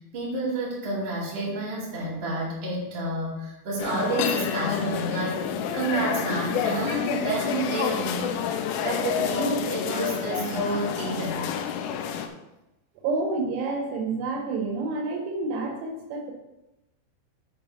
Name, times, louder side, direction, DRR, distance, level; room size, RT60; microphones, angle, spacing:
voice 1, 0.1-5.4 5.7-8.4 8.8-11.5, right 2 dB, 35° right, -6 dB, 2.3 m, -29 dB
sound 1, 3.8-12.3, left 8 dB, 85° left, 3.1 m, -29 dB
voice 2, 13.0-16.3, right 3 dB, 90° right, 2 dB, 4.1 m, -29 dB
8.7 x 4.6 x 5.2 m, 0.95 s
omnidirectional pair, 5.9 m